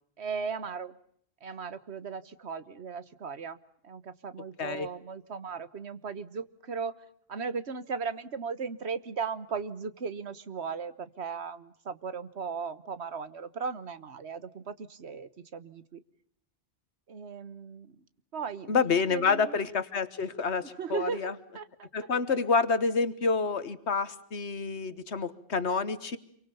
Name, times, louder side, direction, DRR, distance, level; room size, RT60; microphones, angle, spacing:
voice 1, 0.2-0.9 1.4-3.6 3.8-6.9 7.3-16.0 17.1-18.0 18.3-19.6 20.6-21.9, right 5 dB, 75° right, 14 dB, 1.5 m, -37 dB
voice 2, 18.7-21.3 21.9-26.2, left 5 dB, 85° left, 14 dB, 1.7 m, -28 dB
27.5 x 24.0 x 7.0 m, 0.68 s
omnidirectional pair, 1.1 m